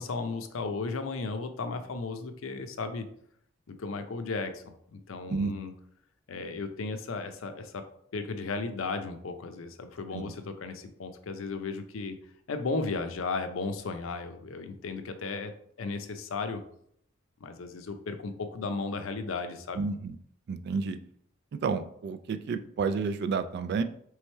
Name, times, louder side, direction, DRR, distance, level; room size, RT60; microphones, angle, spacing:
voice 1, 0.0-3.1 3.7-5.7 6.3-7.9 8.1-12.2 12.5-15.5 15.8-16.6 17.4-19.8, left 3 dB, 80° left, 8 dB, 0.6 m, -35 dB
voice 2, 19.8-20.1 20.5-21.0 21.5-23.8, right 4 dB, 55° right, 10 dB, 0.3 m, -30 dB
3.4 x 3.2 x 4.3 m, 0.67 s
head